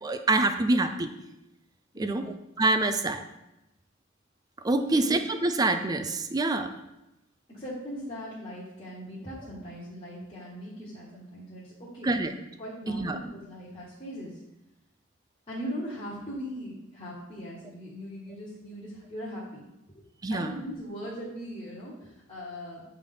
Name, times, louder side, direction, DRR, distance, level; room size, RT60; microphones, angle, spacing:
voice 1, 0.0-1.1 2.0-3.2 4.6-6.7 12.0-12.3 12.9-13.2 20.2-20.5, right 2 dB, 20° right, 8 dB, 0.3 m, -26 dB
voice 2, 1.9-2.3 4.8-5.0 7.5-12.2 12.6-14.4 15.5-19.6 20.3-22.8, equal, 30° left, -8 dB, 1.3 m, -39 dB
8.0 x 3.5 x 3.8 m, 0.92 s
head